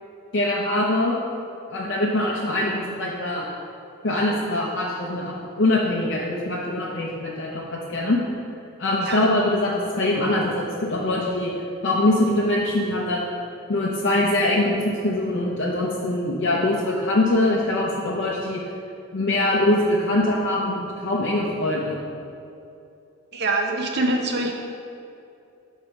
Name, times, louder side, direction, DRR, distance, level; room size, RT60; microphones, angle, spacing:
voice 1, 0.3-1.2 1.7-3.5 4.0-8.2 8.8-13.3 13.7-18.6 19.1-22.0, left 1 dB, 50° left, -4 dB, 0.6 m, -23 dB
voice 2, 23.3-24.5, right 2 dB, 50° right, 1 dB, 0.7 m, -24 dB
6.9 x 3.5 x 5.4 m, 2.7 s
head